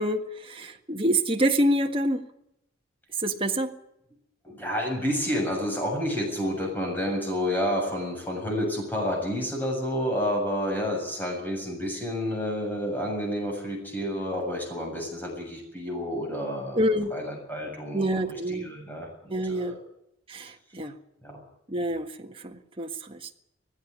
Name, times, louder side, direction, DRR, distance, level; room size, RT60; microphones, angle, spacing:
voice 1, 0.0-2.2 3.2-3.7 16.8-17.1 17.9-18.7 19.3-19.8 20.3-21.0 21.7-23.2, right 1 dB, 25° right, 4 dB, 1.7 m, -27 dB
voice 2, 4.4-19.8 21.2-21.4, equal, 10° left, 0 dB, 7.1 m, -30 dB
18.5 x 15.5 x 9.7 m, 0.82 s
head